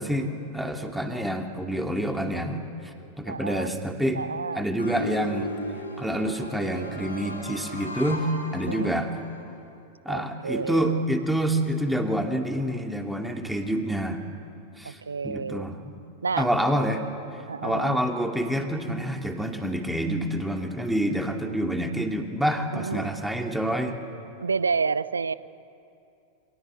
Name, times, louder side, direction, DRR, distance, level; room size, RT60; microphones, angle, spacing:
voice 1, 0.0-4.2 4.5-5.5 6.0-9.1 10.0-14.2 14.8-15.0 15.2-16.0 16.4-17.0 17.6-24.0, equal, 5° right, 3 dB, 2.6 m, -27 dB
voice 2, 3.3-3.7 4.1-4.7 8.7-8.9 10.1-11.0 14.8-15.7 16.2-16.5 17.5-18.0 22.7-23.1 24.4-25.3, right 5 dB, 75° right, 18 dB, 0.6 m, -30 dB
sound 1, 4.8-9.4, left 1 dB, 80° left, 6.3 m, -36 dB
29.0 x 23.5 x 7.9 m, 2.7 s
figure-of-eight pair, 90°, 0 cm